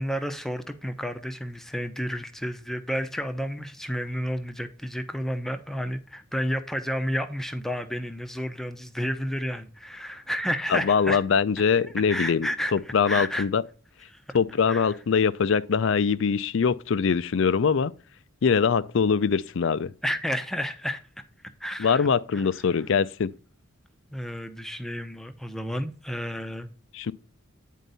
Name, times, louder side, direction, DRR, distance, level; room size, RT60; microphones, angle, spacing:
voice 1, 0.0-11.2 11.8-13.5 14.1-14.4 14.7-15.0 20.0-21.0 21.6-22.9 24.1-26.7, equal, ahead, 0.6 m, -31 dB
voice 2, 10.7-13.6 14.3-17.9 18.4-19.9 21.8-23.3 26.9-27.1, left 6 dB, 60° left, 0.4 m, -23 dB
9.2 x 4.6 x 4.0 m
head